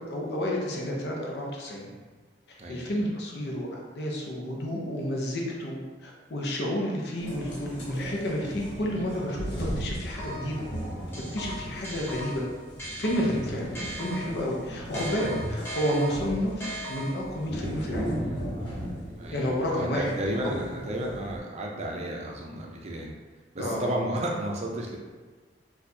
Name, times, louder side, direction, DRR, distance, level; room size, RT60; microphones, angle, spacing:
voice 1, 0.0-1.9 2.7-5.8 6.0-10.6 11.3-12.4 12.9-18.2 19.3-20.1 21.2-21.3 23.6-23.9, equal, 60° left, -2 dB, 0.6 m, -30 dB
voice 2, 2.6-2.9 19.2-23.1 23.5-25.0, right 1 dB, 35° right, -1 dB, 0.5 m, -32 dB
sound 1, 7.2-21.4, equal, 90° left, 1.1 m, -36 dB
sound 2, 9.9-10.6 11.1-14.5 14.9-17.4, right 1 dB, 15° left, 0.6 m, -39 dB
4.3 x 2.4 x 2.7 m, 1.4 s
head